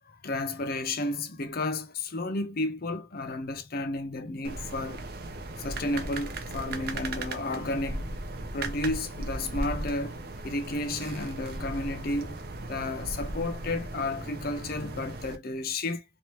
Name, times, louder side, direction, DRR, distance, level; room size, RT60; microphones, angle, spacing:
voice 1, 0.0-5.0 5.6-8.1 8.5-10.2 10.4-12.4 12.7-16.0, left 2 dB, 55° left, 0.7 m, -32 dB
sound 1, 4.4-15.4, right 2 dB, 60° right, 0.7 m, -37 dB
3.1 x 2.8 x 3.1 m
head